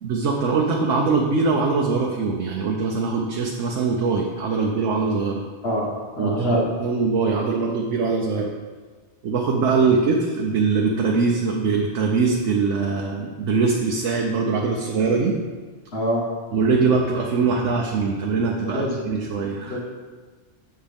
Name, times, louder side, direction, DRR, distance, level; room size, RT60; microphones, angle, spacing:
voice 1, 0.0-5.4 6.2-8.5 9.2-15.4 16.5-19.8, right 4 dB, 85° right, 0 dB, 1.1 m, -22 dB
voice 2, 6.1-6.7 15.9-16.2 18.6-19.1 19.7-19.8, equal, 55° left, -2 dB, 1.7 m, -25 dB
7.5 x 7.1 x 3.5 m, 1.4 s
omnidirectional pair, 1.2 m